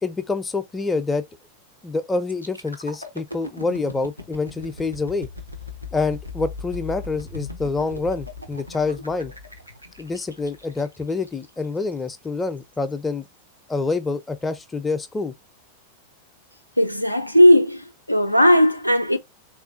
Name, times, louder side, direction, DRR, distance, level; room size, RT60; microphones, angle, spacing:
voice 1, 0.0-1.2 1.8-5.3 5.9-9.3 10.0-13.2 13.7-15.3, left 3 dB, 15° left, 0.4 m, -26 dB
sound 1, 2.3-12.1 12.6-12.8, left 3 dB, 90° right, 0.7 m, -38 dB
voice 2, 16.8-19.2, left 1 dB, 90° left, 0.3 m, -16 dB
3.5 x 2.4 x 2.4 m
figure-of-eight pair, 90°, 0 cm